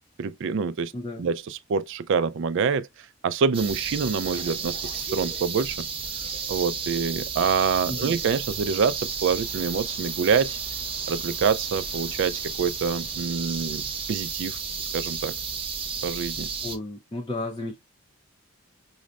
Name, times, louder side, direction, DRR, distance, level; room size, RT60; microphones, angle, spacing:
voice 1, 0.2-2.9 3.2-5.9 6.5-10.6 11.1-13.8 14.1-14.6 14.9-15.4 16.0-16.5, right 5 dB, 60° right, 0.3 m, -26 dB
voice 2, 0.9-1.3 7.9-8.2 16.6-17.8, left 2 dB, 20° left, 0.5 m, -33 dB
sound 1, 3.5-16.8, right 5 dB, 25° right, 0.9 m, -32 dB
6.1 x 2.1 x 2.3 m
head